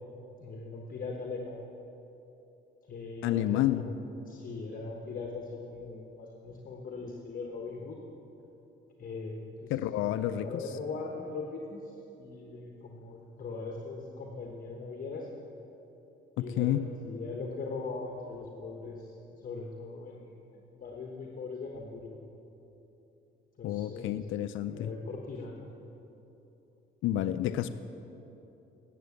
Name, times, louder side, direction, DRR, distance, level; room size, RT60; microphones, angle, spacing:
voice 1, 0.4-1.6 2.9-4.0 4.3-8.0 9.0-15.3 16.4-22.2 23.6-24.3 24.7-25.5, left 3 dB, 45° left, 0 dB, 1.2 m, -40 dB
voice 2, 3.2-3.9 9.7-10.6 16.4-16.9 23.6-24.9 27.0-27.7, left 13 dB, 85° left, 12 dB, 0.4 m, -29 dB
9.5 x 7.5 x 8.1 m, 3.0 s
cardioid pair, 90°, 20 cm